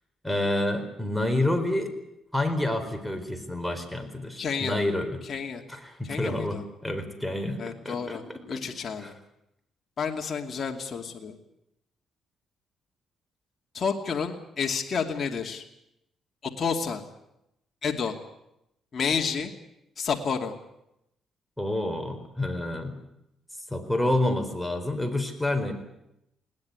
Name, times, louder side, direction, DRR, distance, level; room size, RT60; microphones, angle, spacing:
voice 1, 0.2-1.9 2.3-5.2 5.7-8.6 9.0-9.1 21.6-23.0 23.7-25.7, left 1 dB, ahead, 6 dB, 4.4 m, -28 dB
voice 2, 4.4-4.8 5.3-5.6 6.0-6.6 7.6-8.2 8.5-9.1 10.0-11.4 13.7-15.6 16.4-17.0 17.8-18.1 18.9-19.5 20.0-20.5, left 6 dB, 45° left, 2 dB, 2.6 m, -30 dB
21.0 x 19.0 x 9.6 m, 0.83 s
cardioid pair, 90°, 0 cm